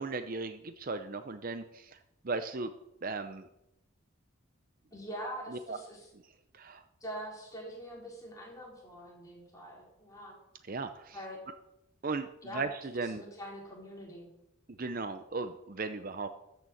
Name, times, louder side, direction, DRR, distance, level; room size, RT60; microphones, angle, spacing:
voice 1, 0.0-2.0 2.2-2.7 3.0-3.5 5.5-5.8 6.5-6.8 10.7-11.2 12.0-13.2 14.8-16.3, right 3 dB, 40° right, 9 dB, 0.6 m, -36 dB
voice 2, 4.9-6.1 7.0-10.4 11.1-11.4 12.4-12.6 13.0-14.3, equal, 15° left, -3 dB, 4.2 m, -44 dB
13.5 x 6.8 x 7.7 m, 0.83 s
head